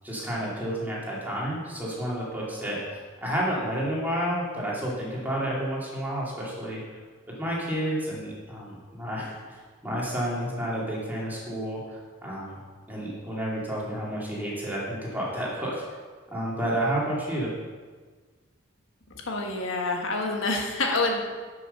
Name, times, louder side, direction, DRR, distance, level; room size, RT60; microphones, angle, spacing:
voice 1, 0.0-6.8 7.4-12.6 12.9-15.8 16.3-17.5, right 1 dB, 10° right, -5 dB, 2.7 m, -30 dB
voice 2, 19.3-21.3, left 2 dB, 75° left, 1 dB, 1.5 m, -27 dB
10.5 x 6.2 x 6.7 m, 1.5 s
head